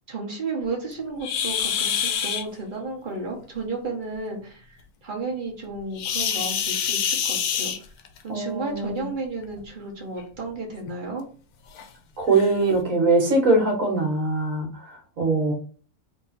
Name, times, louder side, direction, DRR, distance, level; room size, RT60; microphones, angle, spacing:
voice 1, 0.1-4.6 5.0-7.7 8.2-11.2, right 3 dB, 35° right, 0 dB, 1.2 m, -33 dB
sound 1, 1.2-2.4 6.0-8.2 9.4-9.6 10.2-10.3 10.9-11.0 11.8-11.9 12.3-12.5, left 8 dB, 90° left, 1.1 m, -26 dB
voice 2, 8.3-9.0 12.2-15.5, right 3 dB, 60° right, 1 dB, 1.7 m, -22 dB
3.7 x 2.8 x 4.1 m, 0.41 s
omnidirectional pair, 1.6 m